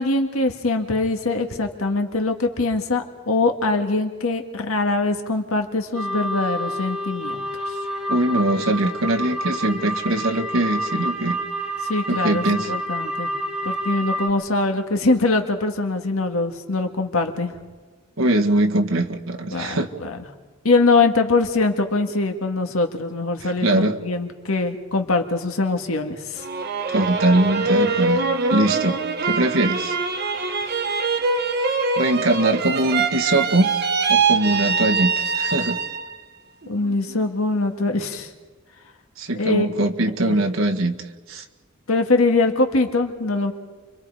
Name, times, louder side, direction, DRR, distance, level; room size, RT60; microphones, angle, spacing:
voice 1, 0.0-7.8 11.8-13.3 13.6-17.5 19.5-20.2 20.6-26.5 36.7-38.3 39.4-39.7 40.2-40.4 41.9-43.5, left 3 dB, 90° left, 4 dB, 1.9 m, -22 dB
sound 1, 5.9-14.3, equal, ahead, 2.6 m, -28 dB
voice 2, 8.1-11.4 12.1-12.7 18.2-19.9 23.4-24.0 26.9-30.0 32.0-33.7 34.1-35.8 39.2-41.4, right 1 dB, 75° right, 2 dB, 1.7 m, -22 dB
sound 2, 26.4-36.2 36.6-37.3, right 4 dB, 50° right, 1.2 m, -23 dB
30.0 x 24.5 x 4.9 m, 1.4 s
head